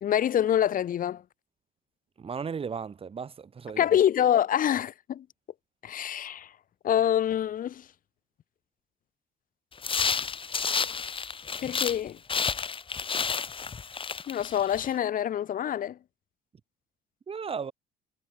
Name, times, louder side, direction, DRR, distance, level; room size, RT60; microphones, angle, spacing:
voice 1, 0.0-1.2 3.8-5.3 5.8-6.5 6.8-7.9 11.6-12.2 14.3-16.0, left 10 dB, 55° left, 2.8 m, -26 dB
voice 2, 2.2-3.8 17.3-17.7, right 6 dB, 35° right, 5.1 m, -35 dB
sound 1, 9.8-12.0 12.3-14.9, left 5 dB, 30° left, 3.3 m, -30 dB
cardioid pair, 110°, 17 cm